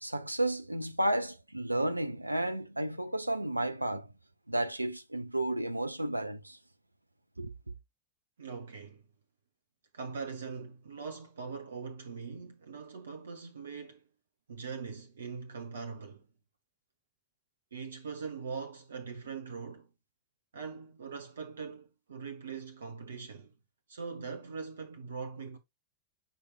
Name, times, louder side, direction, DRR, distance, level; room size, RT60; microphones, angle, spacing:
voice 1, 0.0-4.1 4.5-6.6 7.4-7.5, right 1 dB, 85° right, 0.5 m, -32 dB
voice 2, 8.4-9.0 9.9-14.0 14.5-16.3 17.7-19.9 20.5-23.5 23.9-25.6, right 5 dB, 65° right, 1.0 m, -42 dB
8.3 x 5.2 x 2.4 m
figure-of-eight pair, 90°, 0 cm